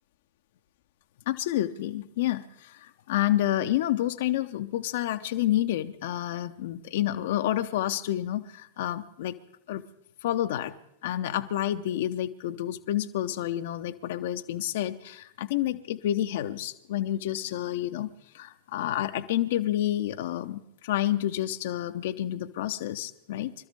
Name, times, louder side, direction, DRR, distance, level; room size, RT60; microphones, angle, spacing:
voice 1, 1.3-9.4 9.7-9.8 10.2-10.7 11.0-23.5, left 13 dB, 55° left, 8 dB, 0.7 m, -29 dB
25.0 x 13.0 x 3.5 m, 0.78 s
figure-of-eight pair, 90°, 0 cm